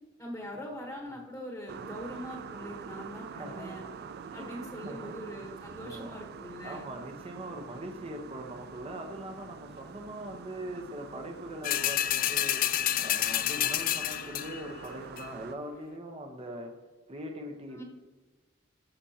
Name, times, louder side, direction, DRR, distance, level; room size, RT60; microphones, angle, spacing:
voice 1, 0.2-3.9 4.3-6.9 17.7-17.8, equal, 15° left, -1 dB, 1.2 m, -42 dB
sound 1, 1.7-15.5, right 6 dB, 50° right, 0.3 m, -46 dB
voice 2, 3.3-3.7 4.3-5.1 5.8-6.2 6.6-16.7 17.1-17.8, right 1 dB, 30° right, 3 dB, 1.0 m, -41 dB
sound 2, 11.6-14.7 15.2-15.3, left 12 dB, 45° left, 0.3 m, -29 dB
14.0 x 6.2 x 2.9 m, 1.2 s
head